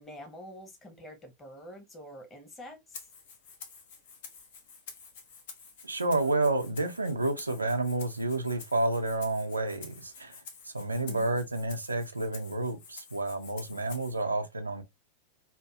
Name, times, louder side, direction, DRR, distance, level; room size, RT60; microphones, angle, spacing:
voice 1, 0.0-3.1 11.0-11.3, equal, 15° left, 1.1 m, -47 dB
Rattle (instrument), 2.9-14.2, left 5 dB, 55° left, 0.8 m, -50 dB
voice 2, 5.8-10.4 10.7-14.8, right 2 dB, 80° right, 0.5 m, -30 dB
2.8 x 2.6 x 2.3 m
figure-of-eight pair, 90°, 0 cm